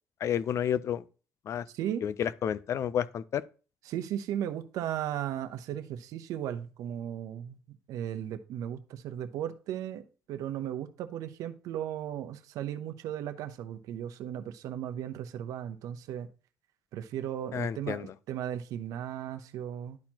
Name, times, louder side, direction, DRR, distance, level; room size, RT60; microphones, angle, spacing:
voice 1, 0.2-1.0 1.5-1.7 2.0-3.4 17.5-18.1, left 9 dB, 55° left, 0.5 m, -30 dB
voice 2, 3.9-16.3 16.9-20.0, right 10 dB, 75° right, 0.8 m, -36 dB
11.5 x 4.4 x 2.9 m
cardioid pair, 95°, 6 cm